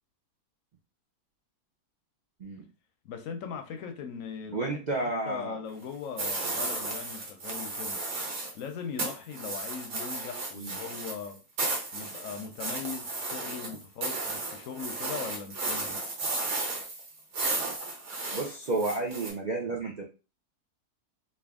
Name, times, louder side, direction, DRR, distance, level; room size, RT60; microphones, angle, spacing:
voice 1, 3.0-8.0 8.5-11.4 11.9-16.0, left 6 dB, 70° left, 0.9 m, -40 dB
voice 2, 4.5-5.6 10.6-10.8 18.3-20.0, right 2 dB, 85° right, 0.4 m, -31 dB
sound 1, 6.2-8.6 9.0-19.3, right 2 dB, 65° right, 1.5 m, -34 dB
3.3 x 2.5 x 3.5 m
omnidirectional pair, 1.7 m